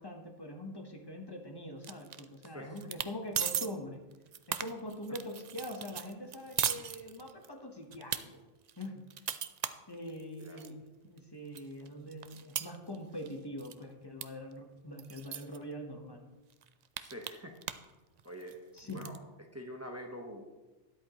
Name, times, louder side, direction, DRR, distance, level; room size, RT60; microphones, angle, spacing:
voice 1, 0.0-4.0 4.5-8.4 8.8-9.3 9.9-16.3 18.7-19.1, left 1 dB, 20° left, 3 dB, 1.0 m, -43 dB
sound 1, 1.8-2.5 2.8-3.1 3.4-3.7 4.1-7.5 7.9-8.2 8.7-10.7 11.2-11.3 11.6-13.3 13.6-13.8 14.2-14.3 14.5-14.6 15.0-15.6 16.1-16.2 16.5-17.9 18.2-19.2, right 9 dB, 60° right, 0.4 m, -37 dB
voice 2, 17.0-17.6 18.2-18.6 18.9-19.2 19.5-20.5, equal, 15° right, 2 dB, 0.9 m, -45 dB
12.5 x 10.5 x 3.0 m, 1.1 s
omnidirectional pair, 1.2 m